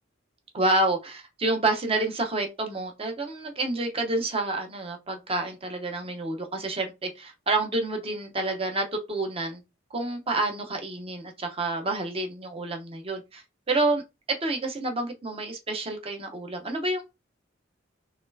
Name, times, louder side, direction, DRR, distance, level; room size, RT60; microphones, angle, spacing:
voice 1, 0.5-9.6 9.9-17.0, right 2 dB, 30° right, 0.8 m, -29 dB
4.2 x 3.2 x 2.6 m
head